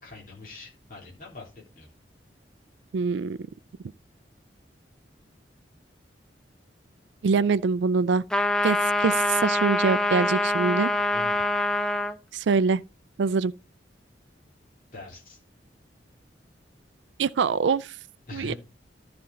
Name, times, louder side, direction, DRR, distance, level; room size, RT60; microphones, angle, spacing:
voice 1, 0.0-1.9 9.0-9.1 11.0-11.5 14.9-15.4 18.3-18.6, left 3 dB, 45° left, 3.6 m, -43 dB
voice 2, 2.9-3.4 7.2-8.2 8.6-10.9 12.3-12.8 13.2-13.5 17.2-17.9 18.3-18.5, right 5 dB, 80° right, 0.4 m, -24 dB
sound 1, 8.3-12.2, left 1 dB, 5° left, 0.5 m, -25 dB
13.5 x 5.2 x 4.2 m
head